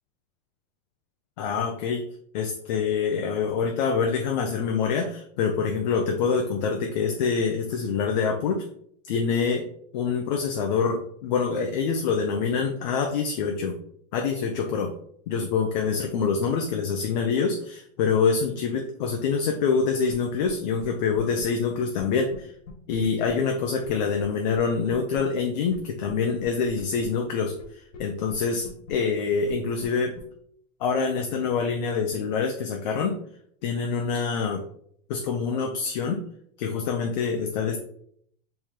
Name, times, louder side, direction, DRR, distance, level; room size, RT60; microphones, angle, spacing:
voice 1, 1.4-2.0 2.3-8.7 9.1-9.7 9.9-13.8 14.1-14.9 15.3-22.5 22.9-30.1 30.8-33.2 33.6-34.6 35.1-36.2 36.6-37.8, left 5 dB, 35° left, 3 dB, 0.5 m, -26 dB
sound 1, 20.1-20.2 20.4-20.5 20.8-20.9 21.1-21.4 22.0-22.1 22.3-22.4 22.7-23.3 23.8-23.9 24.2-24.3 24.5-24.6 24.9-25.2 25.7-25.8 26.1-26.2 26.4-27.1 27.6-27.7 27.9-28.0 28.3-28.4 28.6-28.9 29.5-29.6 29.8-29.9 30.2-30.3, left 5 dB, 70° left, 1.4 m, -43 dB
3.6 x 3.3 x 4.3 m, 0.66 s
supercardioid pair, 170°, 38 cm